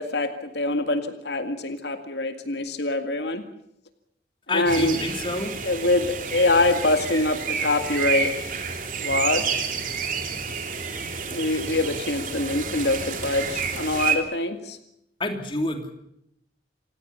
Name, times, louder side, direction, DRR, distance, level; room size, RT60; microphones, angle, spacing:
voice 1, 0.0-3.4 4.5-5.0 5.6-8.3 9.0-9.6 11.3-14.8, left 2 dB, 75° left, 8 dB, 2.1 m, -24 dB
voice 2, 4.5-5.5 15.2-15.9, left 2 dB, 30° left, 5 dB, 3.0 m, -28 dB
sound 1, 4.7-14.2, right 6 dB, 50° right, 3.3 m, -29 dB
28.0 x 17.5 x 7.0 m, 0.76 s
head